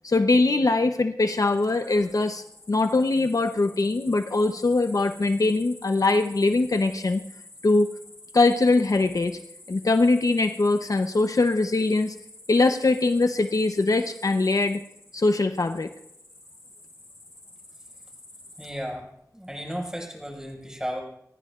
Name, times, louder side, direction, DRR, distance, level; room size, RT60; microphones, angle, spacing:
voice 1, 0.0-7.2 7.6-7.9 8.3-9.4 9.7-12.2 12.5-14.8 15.1-15.9, left 3 dB, 65° left, 7 dB, 0.8 m, -22 dB
sound 1, 1.3-18.7, left 2 dB, 45° left, 5.5 m, -49 dB
voice 2, 18.6-19.1 19.3-21.0, equal, 10° right, 0 dB, 5.6 m, -34 dB
30.0 x 14.5 x 2.5 m, 0.77 s
wide cardioid pair, 60°, 6 cm